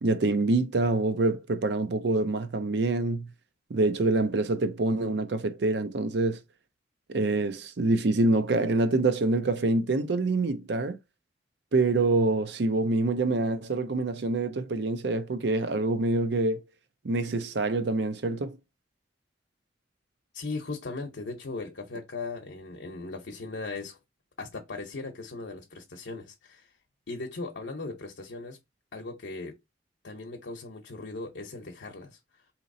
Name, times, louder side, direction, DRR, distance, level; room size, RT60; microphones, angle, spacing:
voice 1, 0.0-3.3 3.7-6.4 7.1-11.0 11.7-16.6 17.0-18.6, right 2 dB, 70° right, 0.6 m, -26 dB
voice 2, 20.3-24.0 24.4-26.7 27.1-28.6 28.9-29.6 30.0-32.2, left 3 dB, 90° left, 0.7 m, -38 dB
3.9 x 2.9 x 2.6 m
head